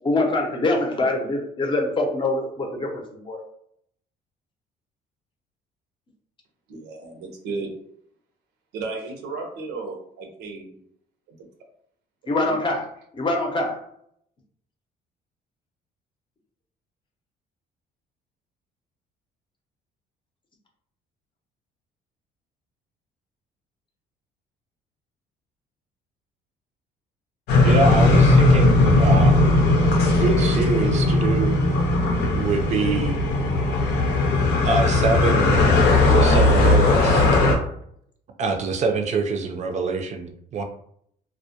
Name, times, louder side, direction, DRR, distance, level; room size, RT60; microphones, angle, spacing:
voice 1, 0.0-3.4 12.3-12.9 13.1-13.8, left 2 dB, 30° left, 1 dB, 0.6 m, -24 dB
voice 2, 6.7-7.7 8.7-10.8 12.3-12.6, right 3 dB, 90° right, 3 dB, 0.6 m, -34 dB
sound 1, 27.5-37.5, left 2 dB, 75° left, 0.6 m, -18 dB
voice 3, 27.6-29.4 30.1-31.6 32.4-33.2 34.6-35.6 36.1-37.3 38.4-40.6, right 4 dB, 45° right, 5 dB, 0.4 m, -25 dB
2.2 x 2.1 x 2.7 m, 0.69 s
cardioid pair, 110°, 17 cm